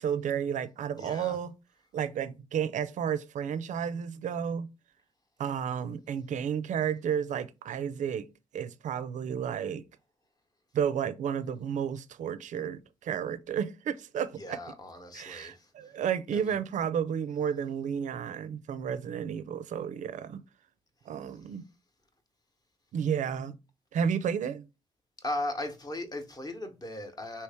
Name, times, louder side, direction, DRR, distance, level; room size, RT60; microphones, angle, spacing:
voice 1, 0.0-1.5 1.9-4.7 5.4-8.3 8.5-9.8 10.7-14.6 15.1-20.4 21.1-21.7 22.9-23.6 23.9-24.7, right 8 dB, 75° right, 0.4 m, -32 dB
voice 2, 1.0-1.4 14.3-15.9 16.3-16.6 21.3-21.5 25.2-27.4, left 1 dB, 30° left, 0.9 m, -38 dB
3.2 x 2.8 x 3.3 m
cardioid pair, 60°, 13 cm